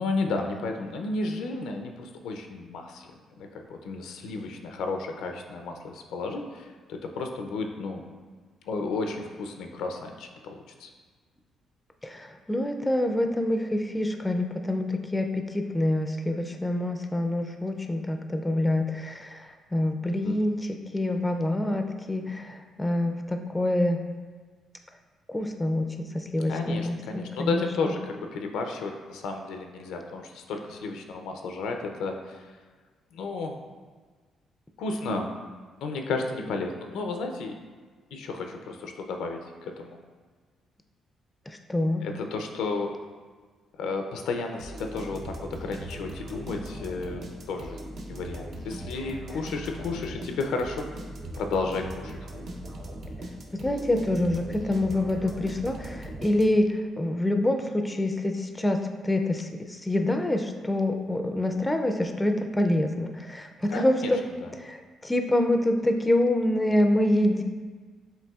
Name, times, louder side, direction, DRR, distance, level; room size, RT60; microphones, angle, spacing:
voice 1, 0.0-3.1 3.4-8.0 8.7-10.9 20.2-20.4 26.5-32.5 33.1-33.6 34.8-35.3 35.8-37.5 38.1-40.0 42.0-42.9 43.8-47.2 47.5-47.8 48.1-50.9 51.3-52.2 63.7-64.1 64.4-64.5, left 3 dB, 85° left, 4 dB, 0.4 m, -32 dB
voice 2, 12.0-24.0 25.3-27.6 41.7-42.0 53.5-64.2 64.6-67.4, left 1 dB, 15° left, 4 dB, 0.4 m, -26 dB
sound 1, 44.6-56.8, right 1 dB, 65° right, 0.7 m, -39 dB
7.6 x 2.6 x 2.3 m, 1.5 s
cardioid pair, 90°, 0 cm